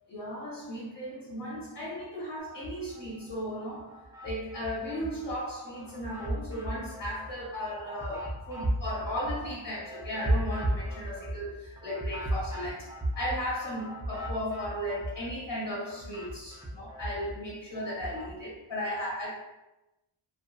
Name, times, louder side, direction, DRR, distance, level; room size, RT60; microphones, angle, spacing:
voice 1, 0.1-19.3, equal, 60° left, -6 dB, 1.2 m, -36 dB
sound 1, 2.5-3.3 3.8-5.4 5.8-15.5 15.8-18.3, right 1 dB, 5° right, 0.5 m, -35 dB
2.7 x 2.2 x 2.5 m, 0.97 s
wide cardioid pair, 95°, 47 cm